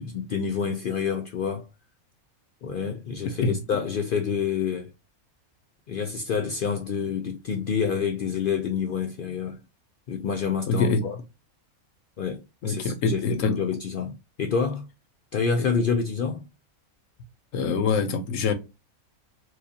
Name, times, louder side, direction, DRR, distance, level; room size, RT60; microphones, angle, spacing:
voice 1, 0.0-1.7 2.6-4.9 5.9-9.6 10.1-11.2 12.2-14.9 15.3-16.5, left 6 dB, 80° left, 0.4 m, -28 dB
voice 2, 10.7-11.0 12.6-13.6 17.5-18.5, left 4 dB, 65° left, 1.0 m, -24 dB
4.7 x 2.4 x 2.7 m
omnidirectional pair, 1.5 m